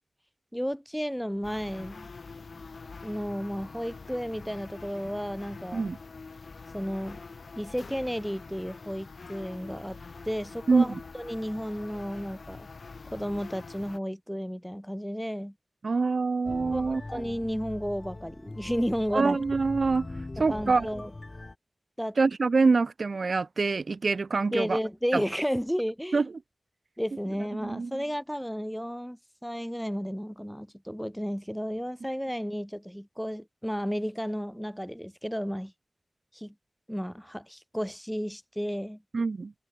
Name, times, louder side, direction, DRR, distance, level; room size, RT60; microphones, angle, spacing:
voice 1, 0.5-2.1 3.0-5.9 6.7-7.2 7.6-10.0 10.3-12.7 13.1-15.5 16.7-19.4 20.5-21.1 22.0-22.2 24.5-26.3 27.0-35.7 36.3-36.5 36.9-39.0, equal, ahead, 2.4 m, -33 dB
sound 1, 1.4-14.0, left 4 dB, 75° left, 2.4 m, -45 dB
voice 2, 10.7-11.0 15.8-17.2 19.1-20.1 20.4-20.9 22.2-24.8 25.1-25.2 26.1-26.2 27.6-28.0 39.1-39.5, right 4 dB, 70° right, 1.0 m, -25 dB
sound 2, 16.4-21.5, left 2 dB, 35° left, 4.0 m, -41 dB
wide cardioid pair, 95°, 0 cm